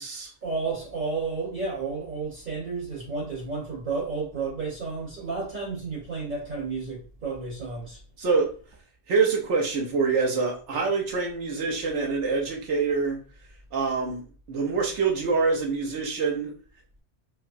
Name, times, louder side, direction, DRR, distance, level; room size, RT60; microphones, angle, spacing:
voice 1, 0.4-8.0, right 4 dB, 45° right, -4 dB, 1.2 m, -32 dB
voice 2, 8.2-8.5 9.1-13.2 13.7-14.2 14.5-16.5, right 4 dB, 85° right, 1 dB, 1.2 m, -25 dB
4.8 x 2.1 x 2.5 m, 0.37 s
omnidirectional pair, 1.2 m